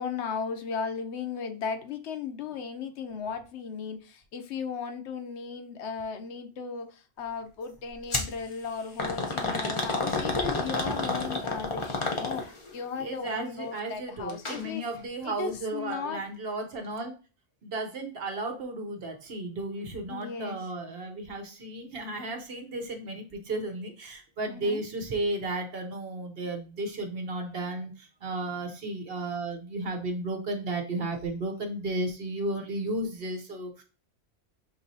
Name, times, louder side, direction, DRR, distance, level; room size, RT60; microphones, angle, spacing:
voice 1, 0.0-6.9 7.2-12.4 12.7-14.8 15.2-16.2 20.1-20.6 24.5-24.8, left 6 dB, 75° left, 0.9 m, -36 dB
sound 1, 8.1-8.3 9.0-12.7 14.3-14.6 14.9-15.0 15.9-16.0, left 3 dB, 30° left, 0.7 m, -29 dB
voice 2, 13.0-17.1 17.6-33.8, right 2 dB, 60° right, 1.0 m, -34 dB
6.0 x 3.1 x 2.7 m
omnidirectional pair, 1.2 m